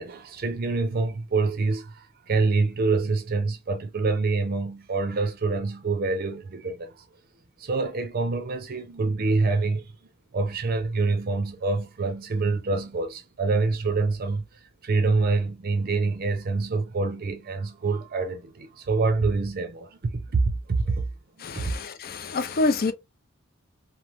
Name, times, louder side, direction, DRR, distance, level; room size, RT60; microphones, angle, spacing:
voice 1, 0.0-1.9 2.3-6.9 7.6-9.9 10.3-14.5 14.8-21.0 21.5-21.7, right 3 dB, 50° right, 0.5 m, -26 dB
voice 2, 21.4-22.9, left 3 dB, 50° left, 0.4 m, -26 dB
3.0 x 2.0 x 2.4 m
head